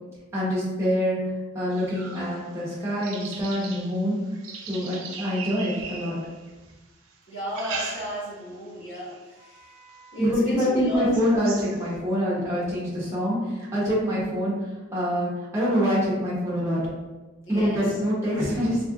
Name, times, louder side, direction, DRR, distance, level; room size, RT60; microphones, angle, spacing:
voice 1, 0.3-4.2 4.6-6.1 10.2-16.8 17.5-18.8, equal, 15° right, -8 dB, 1.1 m, -25 dB
sound 1, 1.7-6.7 7.3-8.5 8.9-9.3 9.9-10.0 10.4-10.5 10.9-12.0, right 5 dB, 70° right, 0.5 m, -39 dB
voice 2, 7.3-11.0 17.5-17.8, equal, 60° left, -7 dB, 1.1 m, -33 dB
3.5 x 3.3 x 2.4 m, 1.2 s
head